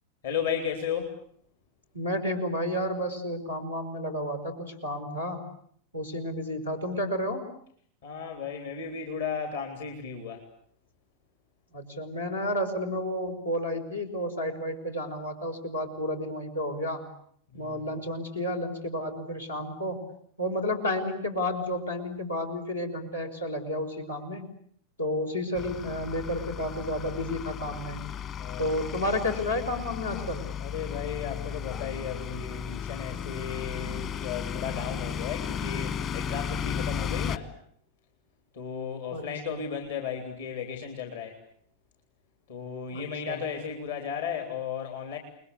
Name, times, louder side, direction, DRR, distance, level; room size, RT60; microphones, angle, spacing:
voice 1, 0.2-1.2 8.0-10.4 17.5-17.7 28.4-29.0 30.6-37.5 38.5-41.4 42.5-45.2, left 7 dB, 60° left, 4 dB, 3.5 m, -35 dB
voice 2, 1.9-5.4 5.9-7.5 11.7-17.1 17.5-20.0 20.4-24.5 25.0-28.0 28.6-30.4 39.1-39.2 39.5-39.6 42.9-43.4, left 1 dB, 85° left, 1 dB, 5.2 m, -31 dB
sound 1, 25.6-37.4, left 8 dB, 30° left, 1.4 m, -34 dB
29.5 x 21.5 x 8.3 m, 0.65 s
figure-of-eight pair, 90°, 0 cm